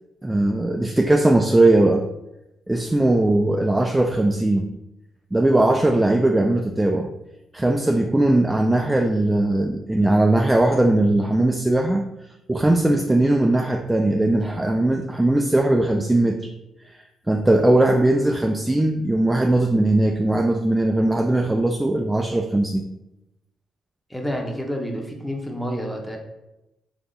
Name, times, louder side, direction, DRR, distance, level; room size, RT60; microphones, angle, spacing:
voice 1, 0.2-2.0 2.7-4.7 5.3-7.1 7.5-12.0 12.5-16.5 16.9-17.0 17.3-22.8, right 1 dB, 10° right, 3 dB, 0.3 m, -19 dB
voice 2, 24.1-26.2, equal, 5° left, 1 dB, 0.8 m, -29 dB
3.6 x 2.9 x 3.9 m, 0.93 s
cardioid pair, 90°, 0 cm